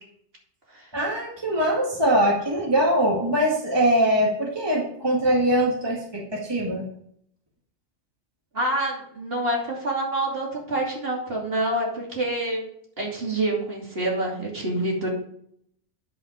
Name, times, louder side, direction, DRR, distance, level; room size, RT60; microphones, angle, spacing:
voice 1, 0.9-6.9, right 1 dB, 20° right, -3 dB, 1.9 m, -22 dB
voice 2, 8.5-12.7 13.0-15.1, right 1 dB, 50° right, -3 dB, 3.1 m, -27 dB
10.5 x 5.4 x 5.2 m, 0.67 s
omnidirectional pair, 1.3 m